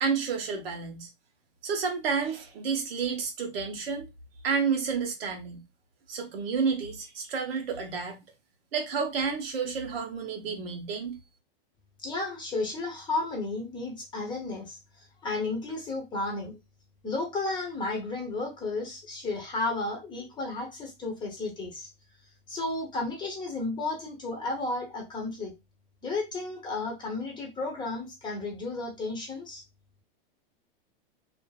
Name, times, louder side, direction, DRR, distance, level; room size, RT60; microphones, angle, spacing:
voice 1, 0.0-1.1 1.6-4.1 4.4-5.6 6.1-8.2 8.7-11.2, right 5 dB, 90° right, 1.0 m, -30 dB
voice 2, 12.0-16.6 17.0-21.9 22.5-25.5 26.0-29.6, left 3 dB, 15° left, 0.7 m, -33 dB
2.5 x 2.5 x 2.3 m
supercardioid pair, 145°, 29 cm